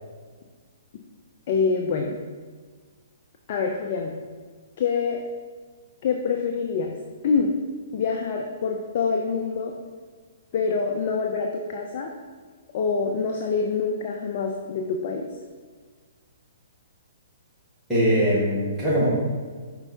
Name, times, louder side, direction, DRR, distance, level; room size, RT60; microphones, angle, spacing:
voice 1, 1.5-2.2 3.5-4.2 4.8-5.2 6.0-6.9 7.2-7.5 7.9-9.7 10.5-12.1 12.7-15.3, left 5 dB, 50° left, 2 dB, 0.6 m, -25 dB
voice 2, 17.9-19.1, equal, 5° right, -10 dB, 1.9 m, -21 dB
5.4 x 4.5 x 4.5 m, 1.5 s
hypercardioid pair, 125°, 0 cm